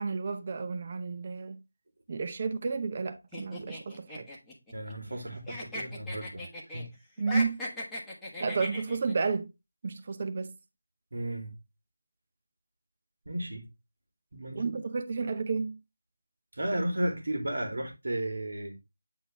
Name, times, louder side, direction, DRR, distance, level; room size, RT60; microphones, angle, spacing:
voice 1, 0.0-1.6 2.1-4.3 7.2-7.6 8.4-9.5 9.8-10.5 14.5-15.8, right 4 dB, 35° right, 0.8 m, -31 dB
sound 1, 3.3-5.2 5.5-6.9 7.2-9.1, left 1 dB, 5° left, 1.3 m, -38 dB
voice 2, 4.7-6.5 6.7-6.9 11.1-11.5 13.2-13.6 14.3-14.7 16.5-18.7, right 1 dB, 65° right, 3.0 m, -34 dB
8.3 x 4.5 x 3.3 m
figure-of-eight pair, 170°, 0 cm